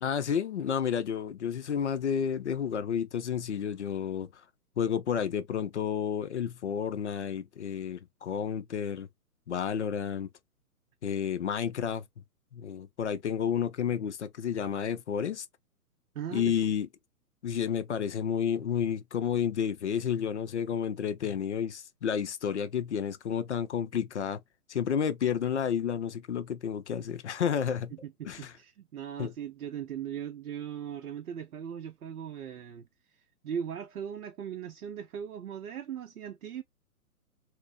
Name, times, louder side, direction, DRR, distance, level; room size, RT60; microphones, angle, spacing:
voice 1, 0.0-4.3 4.8-9.1 9.5-10.3 11.0-12.0 12.5-15.5 16.3-16.9 17.4-24.4 24.7-27.9 28.2-28.5 29.2-29.3, left 8 dB, 50° left, 0.5 m, -31 dB
voice 2, 16.2-16.6 27.9-32.8 33.4-36.6, right 8 dB, 65° right, 0.5 m, -39 dB
3.9 x 2.0 x 2.3 m
figure-of-eight pair, 125°, 45 cm